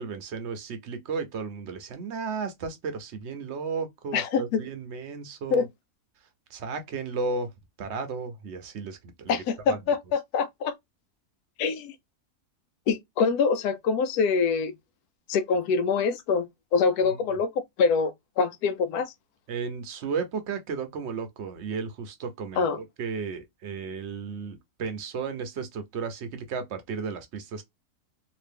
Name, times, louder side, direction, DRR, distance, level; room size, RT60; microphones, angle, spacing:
voice 1, 0.0-5.7 6.5-7.5 7.8-9.8 17.0-17.2 19.5-27.6, right 5 dB, 60° right, 0.8 m, -34 dB
voice 2, 4.1-4.6 5.5-5.7 9.3-10.7 11.6-11.9 12.9-14.7 15.3-16.5 16.7-19.1 22.6-22.8, left 5 dB, 85° left, 1.1 m, -25 dB
2.9 x 2.5 x 3.3 m
omnidirectional pair, 1.6 m